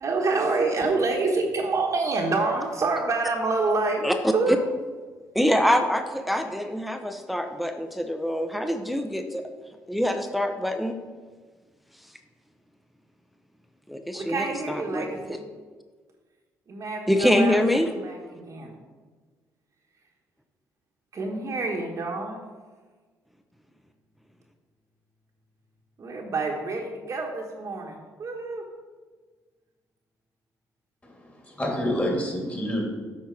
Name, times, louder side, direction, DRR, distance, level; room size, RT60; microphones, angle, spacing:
voice 1, 0.0-4.1 4.3-4.5 14.1-15.4 16.7-17.6 18.0-18.7 21.1-22.4 26.0-28.6, right 3 dB, 50° right, 0 dB, 1.2 m, -27 dB
voice 2, 4.0-4.6 5.3-9.4 9.9-11.0 13.9-15.4 17.1-17.9, equal, ahead, 6 dB, 0.7 m, -25 dB
voice 3, 31.1-32.9, equal, 25° left, 0 dB, 2.6 m, -28 dB
8.3 x 5.4 x 4.5 m, 1.4 s
supercardioid pair, 70°, 7 cm